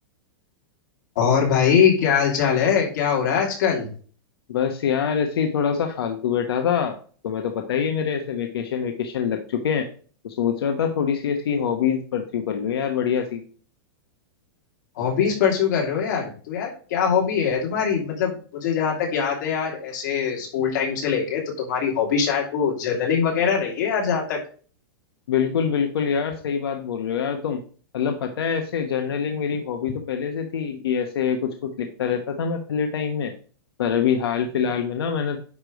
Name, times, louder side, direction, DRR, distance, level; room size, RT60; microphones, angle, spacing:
voice 1, 1.1-3.9 15.0-24.4, left 7 dB, 50° left, -1 dB, 2.8 m, -22 dB
voice 2, 4.5-7.0 7.2-9.9 10.2-13.4 25.3-27.6 27.9-33.3 33.8-35.4, left 7 dB, 85° left, 5 dB, 1.1 m, -25 dB
9.7 x 3.3 x 5.1 m, 0.42 s
supercardioid pair, 180°, 12 cm